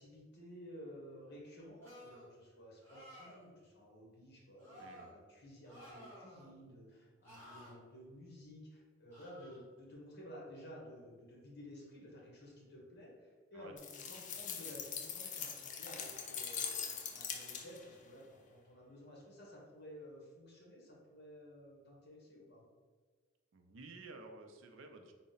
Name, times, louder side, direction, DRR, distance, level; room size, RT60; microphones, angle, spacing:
voice 1, 0.0-22.7, equal, 60° left, -3 dB, 1.0 m, -54 dB
sound 1, 1.8-2.3 2.8-3.5 4.6-5.1 5.7-6.5 7.2-7.7 9.1-9.6, equal, 15° left, 1.3 m, -55 dB
voice 2, 4.8-5.2 13.5-13.7 23.5-25.1, right 3 dB, 80° right, 5 dB, 0.4 m, -53 dB
sound 2, 13.8-17.9, left 7 dB, 40° left, 0.4 m, -42 dB
3.8 x 2.0 x 3.9 m, 1.5 s
head